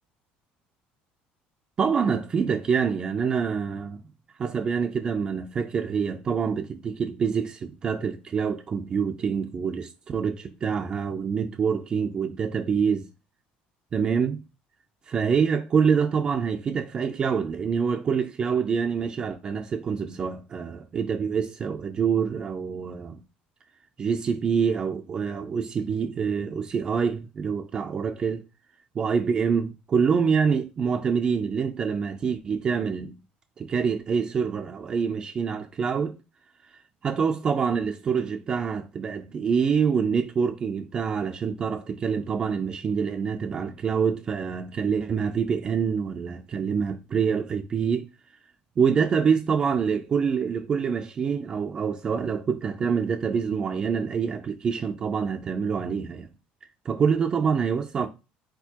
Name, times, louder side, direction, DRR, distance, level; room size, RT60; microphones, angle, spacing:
voice 1, 1.8-4.0 4.4-13.1 13.9-14.4 15.1-23.2 24.0-28.4 29.0-33.1 33.6-36.2 37.0-48.0 48.8-56.3 56.9-58.1, right 6 dB, 25° right, 0.3 m, -26 dB
4.4 x 4.2 x 2.8 m
cardioid pair, 175°, 3 cm